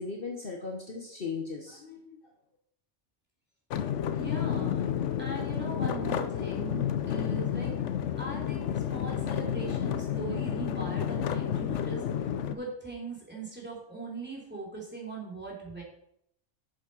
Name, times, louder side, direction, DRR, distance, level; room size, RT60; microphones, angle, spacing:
voice 1, 0.0-2.3, left 4 dB, 50° left, 1 dB, 1.2 m, -38 dB
sound 1, 3.7-12.6, left 9 dB, 75° left, 1.0 m, -31 dB
voice 2, 4.1-4.8 5.2-7.7 8.2-12.0 12.5-15.8, right 4 dB, 10° right, -3 dB, 3.2 m, -40 dB
7.6 x 7.1 x 5.4 m, 0.74 s
omnidirectional pair, 1.3 m